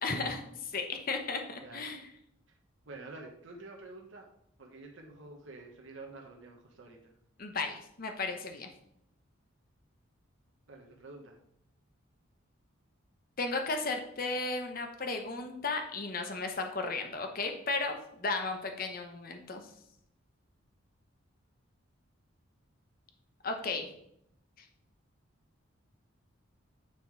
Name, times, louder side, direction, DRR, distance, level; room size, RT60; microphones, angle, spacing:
voice 1, 0.0-2.1 7.4-8.7 13.4-19.6 23.4-23.9, left 3 dB, 45° left, 5 dB, 0.9 m, -35 dB
voice 2, 1.5-1.9 2.9-4.3 4.6-7.0 10.7-11.4 13.8-13.9, right 2 dB, 65° right, 1 dB, 1.0 m, -48 dB
9.0 x 3.7 x 4.6 m, 0.73 s
head